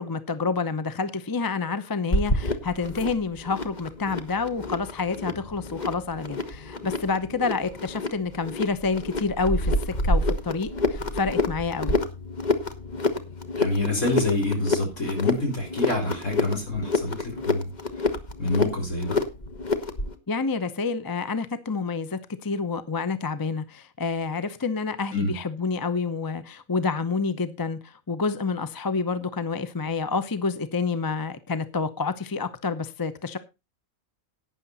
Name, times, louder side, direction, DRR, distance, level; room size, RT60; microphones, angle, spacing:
voice 1, 0.0-12.0 20.3-33.4, left 4 dB, 20° left, 12 dB, 0.7 m, -28 dB
sound 1, 2.1-20.1, left 2 dB, 35° left, 1.2 m, -28 dB
voice 2, 13.6-17.7 18.4-19.2 25.1-25.3, left 2 dB, 70° left, 1 dB, 4.8 m, -27 dB
11.5 x 9.3 x 4.1 m, 0.26 s
omnidirectional pair, 1.3 m